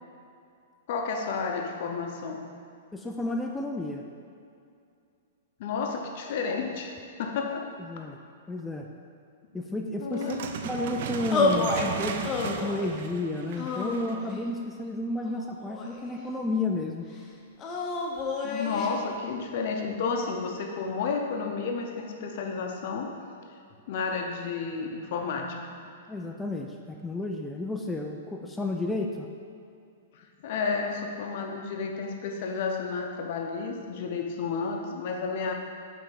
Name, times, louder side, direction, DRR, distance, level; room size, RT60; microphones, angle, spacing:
voice 1, 0.9-2.4 5.6-7.8 10.0-10.4 18.4-23.1 23.9-25.8 30.1-35.5, left 5 dB, 55° left, 3 dB, 0.7 m, -31 dB
voice 2, 2.9-4.0 7.8-8.2 8.5-8.9 9.5-17.1 26.1-29.3, left 2 dB, 5° left, 1 dB, 0.4 m, -32 dB
sound 1, 10.1-14.3, right 7 dB, 60° right, 0.4 m, -36 dB
sound 2, 11.3-11.9 12.2-12.9 13.6-14.5 15.2-16.2 17.6-18.9, left 3 dB, 25° left, 0.8 m, -29 dB
5.6 x 3.4 x 5.2 m, 2.4 s
hypercardioid pair, 125°, 0 cm